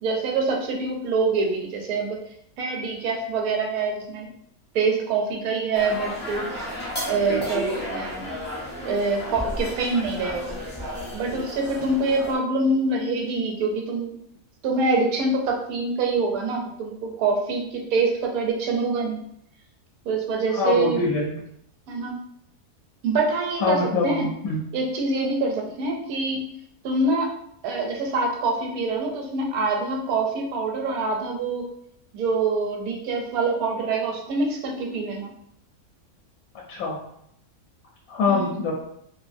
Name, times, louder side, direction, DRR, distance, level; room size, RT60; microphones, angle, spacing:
voice 1, 0.0-2.2 2.6-4.3 4.7-6.8 7.1-8.4 8.8-10.6 11.1-14.2 14.6-19.2 20.0-21.0 21.9-22.2 23.0-24.3 24.7-26.4 26.8-27.3 27.6-31.6 32.1-35.3 38.3-38.6, right 3 dB, 75° right, 1 dB, 1.0 m, -25 dB
sound 1, 5.7-12.3, equal, 15° left, 0.3 m, -33 dB
voice 2, 20.5-21.3 23.6-24.6 36.7-37.0 38.1-38.7, left 4 dB, 75° left, -2 dB, 1.0 m, -24 dB
2.6 x 2.5 x 2.5 m, 0.72 s
omnidirectional pair, 1.6 m